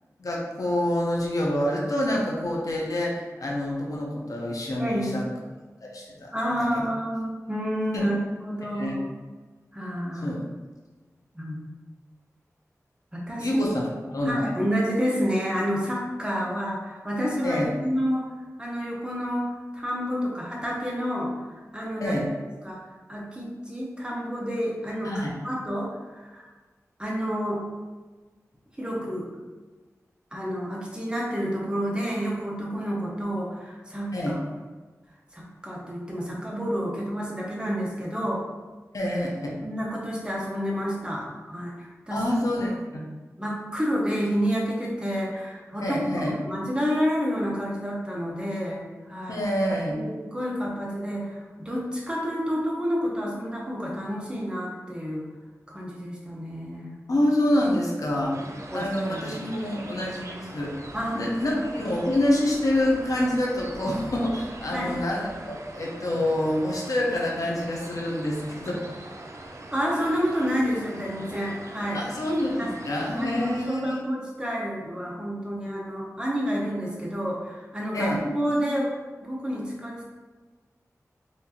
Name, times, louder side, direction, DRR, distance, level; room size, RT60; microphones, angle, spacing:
voice 1, 0.2-5.2 5.8-6.3 6.6-6.8 7.9-8.1 8.7-8.9 10.2-10.4 13.4-13.8 14.1-14.5 17.4-17.7 22.0-22.3 25.0-25.3 34.1-34.4 38.9-39.6 42.1-43.1 45.8-46.3 49.3-50.0 57.1-58.4 58.7-60.7 61.1-68.8 71.9-74.0 77.9-78.2, left 1 dB, 80° left, -3 dB, 0.7 m, -27 dB
voice 2, 4.8-5.1 6.3-9.1 9.7-10.4 11.3-11.6 13.1-13.6 14.2-18.3 18.6-21.3 21.7-22.2 22.6-22.8 23.1-26.5 27.0-27.6 28.8-29.3 30.3-34.4 35.3-38.4 39.6-42.2 43.4-49.4 49.9-55.3 55.7-56.9 58.7-59.4 60.9-61.2 61.5-61.6 64.7-64.9 69.7-72.0 72.6-72.7 73.2-78.9 79.2-80.0, equal, 15° right, -3 dB, 0.8 m, -29 dB
sound 1, 58.3-73.7, right 1 dB, 60° right, 0.4 m, -42 dB
4.2 x 2.6 x 2.8 m, 1.3 s
wide cardioid pair, 80°, 6 cm